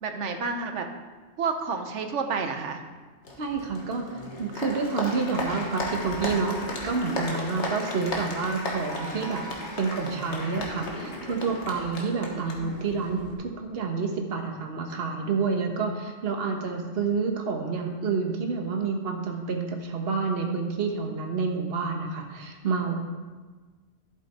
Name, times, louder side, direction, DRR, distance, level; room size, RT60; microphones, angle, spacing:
voice 1, 0.0-0.9 1.4-2.8 12.2-12.8, right 5 dB, 75° right, 6 dB, 1.2 m, -30 dB
Applause, 3.2-13.3, left 1 dB, 65° left, 1.8 m, -35 dB
voice 2, 3.4-9.4 9.8-23.0, right 4 dB, 55° right, 3 dB, 1.3 m, -29 dB
11.5 x 7.8 x 4.3 m, 1.3 s
omnidirectional pair, 1.3 m